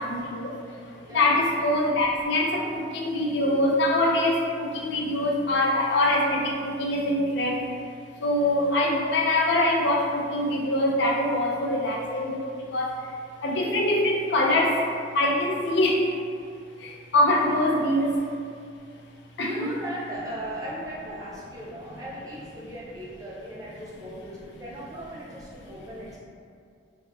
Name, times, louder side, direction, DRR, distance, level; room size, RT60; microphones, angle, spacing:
voice 1, 0.0-0.5 1.1-7.6 8.2-12.4 12.7-12.9 13.4-14.8 15.1-16.1 17.1-18.2 19.4-19.7, left 1 dB, 65° left, -1 dB, 0.4 m, -23 dB
voice 2, 0.6-1.4 19.4-26.2, right 1 dB, 20° right, -6 dB, 0.4 m, -38 dB
3.5 x 2.0 x 2.3 m, 2.3 s
head